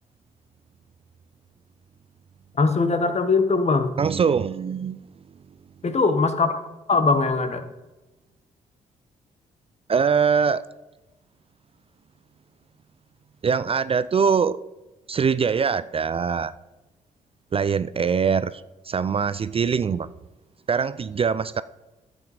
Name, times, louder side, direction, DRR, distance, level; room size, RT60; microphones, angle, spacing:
voice 1, 2.6-3.9 5.8-6.5 6.9-7.7, left 4 dB, 40° left, 10 dB, 1.3 m, -21 dB
voice 2, 4.0-5.0 9.9-10.6 13.4-14.6 15.1-16.5 17.5-20.1 20.7-21.6, right 6 dB, 35° right, 15 dB, 0.4 m, -23 dB
10.5 x 7.2 x 4.9 m, 1.1 s
hypercardioid pair, 45°, 17 cm